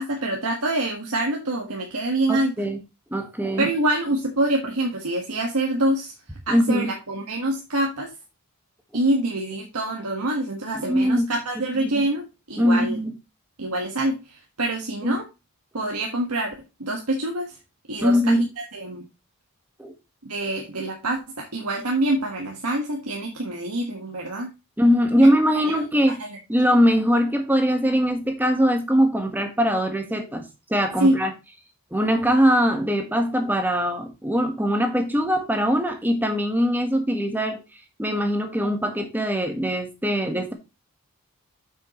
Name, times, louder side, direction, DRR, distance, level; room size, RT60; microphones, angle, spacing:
voice 1, 0.0-2.7 3.6-6.1 6.5-8.1 8.9-13.0 13.6-15.2 15.7-16.5 16.8-17.5 17.9-19.0 20.2-24.5 25.2-25.3 25.5-26.4 31.0-31.1, right 1 dB, 90° right, 0 dB, 1.6 m, -26 dB
voice 2, 2.3-2.8 3.1-3.7 6.5-6.9 10.9-11.3 11.7-12.0 12.6-13.1 15.0-15.2 18.0-18.4 19.8-19.9 24.8-26.2 26.5-31.3 31.9-37.6 38.0-40.5, equal, 10° right, 5 dB, 1.5 m, -21 dB
8.4 x 6.4 x 3.1 m, 0.27 s
head